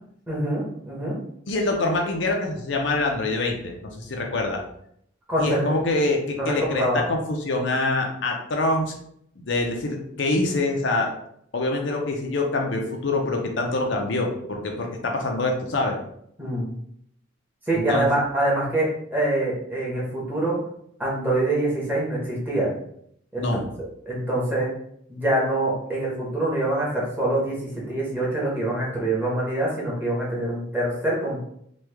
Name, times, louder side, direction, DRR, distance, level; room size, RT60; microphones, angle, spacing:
voice 1, 0.3-1.1 5.3-5.7 6.4-7.1 16.4-16.7 17.7-20.6 21.0-22.7 23.3-23.5 23.8-24.7 25.1-27.6 27.9-31.4, right 1 dB, 10° right, -6 dB, 1.0 m, -25 dB
voice 2, 1.5-4.6 5.4-8.9 9.4-11.1 11.5-16.0 17.7-18.1 23.4-23.6, left 2 dB, 65° left, 1 dB, 0.6 m, -25 dB
3.1 x 2.3 x 3.4 m, 0.70 s
head